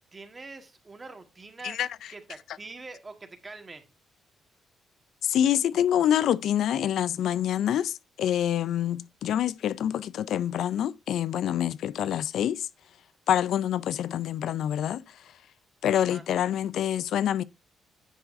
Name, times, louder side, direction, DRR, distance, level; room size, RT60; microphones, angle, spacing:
voice 1, 0.1-1.8 2.1-3.8 15.9-16.3, right 3 dB, 25° right, 1.7 m, -44 dB
voice 2, 1.6-2.1 5.2-12.7 13.3-15.3 15.8-17.4, left 10 dB, 75° left, 0.4 m, -26 dB
9.9 x 7.0 x 2.6 m
cardioid pair, 90°, 0 cm